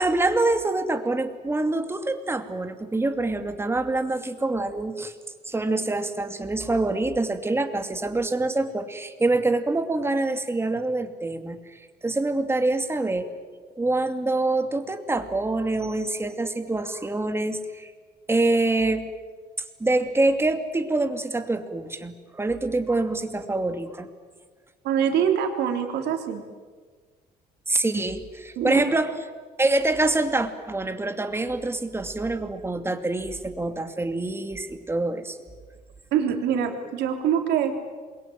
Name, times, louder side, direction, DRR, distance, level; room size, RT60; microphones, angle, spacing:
voice 1, 0.0-5.1 5.5-13.3 13.7-17.9 18.3-19.1 19.8-24.1 27.7-29.2 29.6-35.4, right 2 dB, 15° right, 7 dB, 2.5 m, -25 dB
voice 2, 24.8-26.4 28.6-28.8 36.1-37.7, right 8 dB, 80° right, 4 dB, 3.6 m, -24 dB
28.0 x 22.5 x 9.4 m, 1.5 s
cardioid pair, 110°, 17 cm